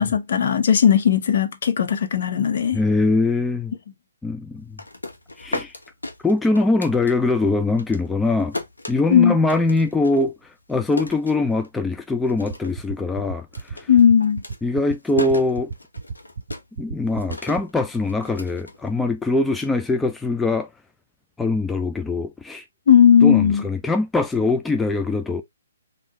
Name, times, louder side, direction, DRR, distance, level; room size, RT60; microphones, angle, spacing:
voice 1, 0.0-2.8 9.1-9.4 13.9-14.4 22.9-23.6, left 8 dB, 55° left, 0.8 m, -16 dB
voice 2, 2.7-3.7 4.2-4.8 5.4-5.8 6.2-8.6 8.9-10.3 10.7-13.9 14.6-15.7 16.8-20.7 21.4-22.6 23.2-25.4, left 2 dB, 5° left, 0.3 m, -22 dB
sound 1, 4.6-7.5 7.8-11.9 12.2-12.9 13.1-19.4, left 2 dB, 90° left, 0.9 m, -35 dB
sound 2, 12.5-17.6, right 4 dB, 55° right, 0.7 m, -32 dB
3.6 x 2.5 x 3.0 m
figure-of-eight pair, 135°, 0 cm